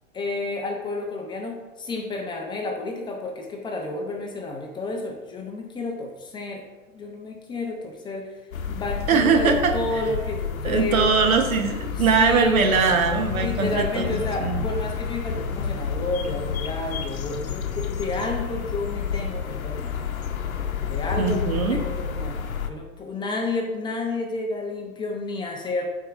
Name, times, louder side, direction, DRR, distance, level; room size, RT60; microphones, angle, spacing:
voice 1, 0.1-6.6 6.9-8.3 8.7-11.1 11.9-12.7 13.3-20.0 20.8-22.3 22.6-25.9, left 2 dB, 10° left, 1 dB, 0.6 m, -31 dB
sound 1, 8.5-22.7, left 6 dB, 80° left, 0.8 m, -30 dB
voice 2, 9.1-10.0 10.6-14.6 21.2-21.8, right 5 dB, 80° right, 5 dB, 1.1 m, -21 dB
12.0 x 4.6 x 2.5 m, 1.3 s
hypercardioid pair, 125°, 41 cm